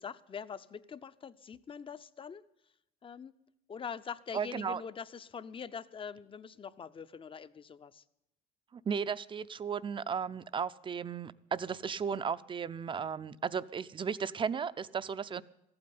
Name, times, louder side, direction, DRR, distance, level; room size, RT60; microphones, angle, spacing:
voice 1, 0.0-2.4 3.0-3.3 3.7-8.0, left 6 dB, 30° left, 14 dB, 0.7 m, -44 dB
voice 2, 4.3-4.8 8.7-15.4, right 6 dB, 30° right, 15 dB, 0.6 m, -35 dB
14.5 x 8.8 x 9.4 m, 0.85 s
cardioid pair, 110°, 17 cm